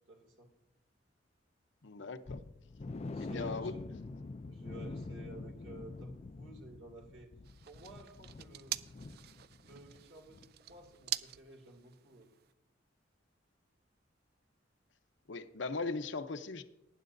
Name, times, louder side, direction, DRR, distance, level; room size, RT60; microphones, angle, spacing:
voice 1, 0.1-0.5 3.0-3.9 4.5-7.3 7.6-8.8 9.6-12.3, right 2 dB, 80° right, 3 dB, 2.5 m, -53 dB
voice 2, 1.8-2.4 3.2-3.7 15.3-16.6, left 3 dB, 70° left, 9 dB, 0.7 m, -39 dB
sound 1, 2.3-10.0 10.3-10.5 10.9-11.0, left 3 dB, 35° left, 0.4 m, -45 dB
sound 2, 7.4-12.5, right 12 dB, 55° right, 0.4 m, -44 dB
19.0 x 10.0 x 2.6 m, 0.86 s
head